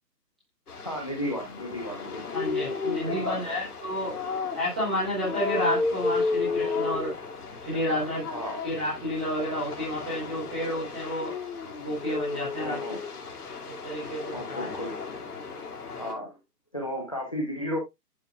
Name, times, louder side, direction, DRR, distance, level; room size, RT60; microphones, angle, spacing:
sound 1, 0.7-16.1, left 4 dB, 65° left, 2.6 m, -33 dB
voice 1, 0.8-3.5 7.9-8.6 12.6-13.0 14.3-14.9 16.0-16.4 16.7-17.8, equal, 20° left, 0.9 m, -34 dB
voice 2, 2.3-4.2 4.5-7.1 7.6-8.2 8.6-11.3 11.8-12.8 13.7-14.7, equal, 5° right, 1.1 m, -30 dB
11.0 x 4.8 x 2.3 m
hypercardioid pair, 180°, 49 cm